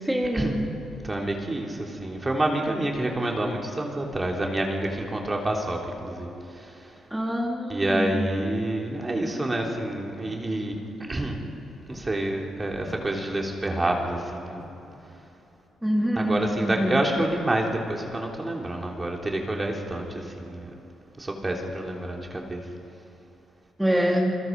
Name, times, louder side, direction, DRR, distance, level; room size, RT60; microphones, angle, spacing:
voice 1, 0.0-0.7 7.1-8.3 15.8-17.0 23.8-24.4, equal, 5° right, -1 dB, 2.9 m, -25 dB
voice 2, 1.0-6.9 7.7-10.8 11.1-11.4 11.9-14.6 16.2-20.7 21.2-22.6, right 1 dB, 25° right, 0 dB, 3.4 m, -28 dB
sound 1, 9.6-9.9 10.3-10.5 11.2-11.4 11.7-12.2 12.9-13.2 13.6-14.0 14.6-15.1, left 2 dB, 40° left, 5.5 m, -46 dB
29.0 x 21.0 x 5.4 m, 2.8 s
supercardioid pair, 70°, 0 cm